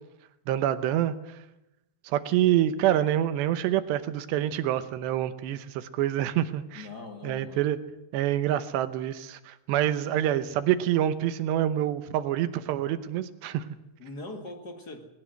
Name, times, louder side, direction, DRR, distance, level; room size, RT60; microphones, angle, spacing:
voice 1, 0.5-1.2 2.0-6.9 7.2-7.8 8.1-13.7, right 12 dB, 80° right, 12 dB, 3.0 m, -26 dB
voice 2, 6.7-7.7 14.0-15.1, left 2 dB, 50° left, 4 dB, 1.2 m, -41 dB
20.5 x 19.0 x 7.9 m, 0.90 s
omnidirectional pair, 5.1 m